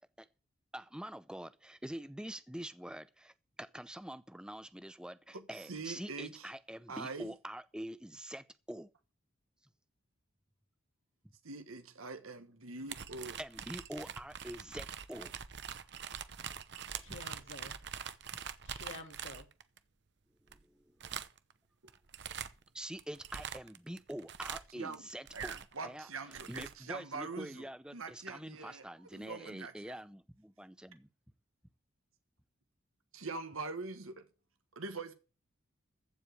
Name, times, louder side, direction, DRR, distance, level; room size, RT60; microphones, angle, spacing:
voice 1, 0.7-8.9 13.4-15.4 18.3-18.4 20.5-21.0 22.7-25.6 25.8-26.1 26.5-31.1, right 1 dB, 5° right, 0.5 m, -45 dB
voice 2, 5.3-6.5 6.9-7.3 11.4-13.4 21.1-21.2 24.7-25.0 25.3-27.7 27.9-28.8 29.1-30.0 33.1-34.3 34.7-35.1, right 4 dB, 85° right, 1.4 m, -43 dB
sound 1, 12.9-19.8 20.5-20.6 21.0-21.5 21.9-22.6 23.0-25.8 26.2-26.7, right 8 dB, 55° right, 0.8 m, -44 dB
voice 3, 17.0-17.7 18.6-19.5, left 2 dB, 65° left, 2.2 m, -49 dB
15.0 x 5.0 x 8.2 m
head